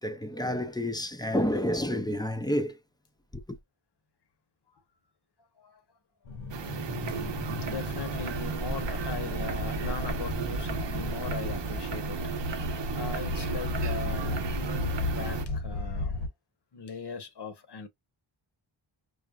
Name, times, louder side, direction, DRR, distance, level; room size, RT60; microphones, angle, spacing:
voice 1, 0.0-2.8 3.3-3.6, equal, 10° left, 0.4 m, -29 dB
sound 1, 6.2-16.3, left 2 dB, 90° left, 1.6 m, -34 dB
sound 2, 6.5-15.4, right 7 dB, 60° right, 0.7 m, -35 dB
voice 2, 7.1-12.2 12.5-12.7 12.9-16.3 16.7-17.9, left 4 dB, 55° left, 1.0 m, -39 dB
4.9 x 2.1 x 2.2 m
wide cardioid pair, 65°, 48 cm